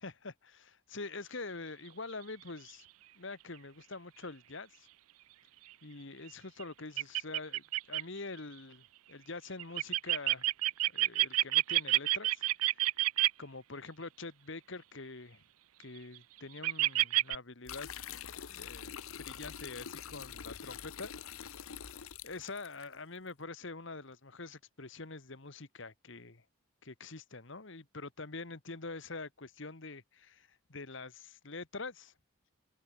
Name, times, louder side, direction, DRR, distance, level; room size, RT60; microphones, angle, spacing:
voice 1, 0.0-0.3 0.6-2.9 3.1-4.9 5.8-10.5 10.9-12.8 13.4-15.4 15.8-17.9 18.5-21.1 22.2-26.4 26.8-32.1, left 3 dB, 55° left, 1.5 m, -45 dB
sound 1, 6.6-6.7 7.0-8.0 9.6-13.3 16.0-16.2 16.6-17.4, right 17 dB, 80° right, 0.5 m, -28 dB
sound 2, 17.7-22.9, left 8 dB, 75° left, 0.9 m, -45 dB
head